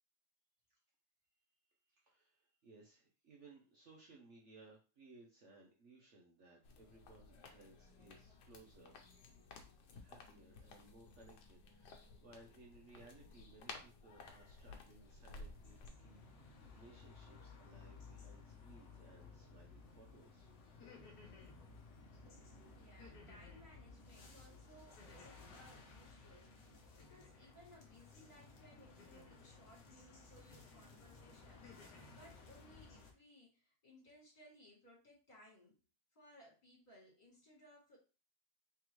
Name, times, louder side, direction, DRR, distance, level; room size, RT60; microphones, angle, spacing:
voice 1, 1.9-9.0 10.0-20.5, right 2 dB, 55° right, -2 dB, 1.0 m, -62 dB
sound 1, 6.6-15.9, left 3 dB, 90° left, 1.4 m, -56 dB
sound 2, 14.9-33.1, left 4 dB, 50° left, 1.1 m, -58 dB
sound 3, 20.7-21.6 23.0-23.7 25.0-25.6 27.0-27.6 29.0-29.6 30.5-30.9 31.3-32.2, left 4 dB, 70° left, 1.4 m, -61 dB
voice 2, 22.2-35.8 36.1-38.0, equal, 25° left, -5 dB, 2.5 m, -63 dB
3.6 x 3.5 x 3.1 m, 0.32 s
omnidirectional pair, 1.8 m